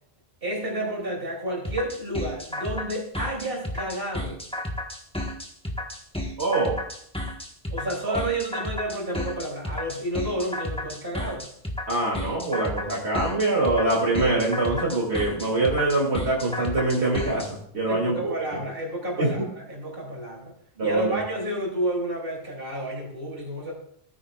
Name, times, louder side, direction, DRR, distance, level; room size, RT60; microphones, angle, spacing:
voice 1, 0.4-4.4 7.7-11.5 17.9-20.5 20.8-23.7, right 1 dB, 60° right, -2 dB, 3.6 m, -30 dB
sound 1, 1.6-17.5, left 1 dB, 5° left, 1.4 m, -32 dB
voice 2, 6.4-6.8 8.1-8.2 11.9-18.3 19.2-19.3 20.8-21.2, right 2 dB, 80° right, -4 dB, 3.0 m, -24 dB
16.5 x 9.7 x 2.5 m, 0.67 s
omnidirectional pair, 1.1 m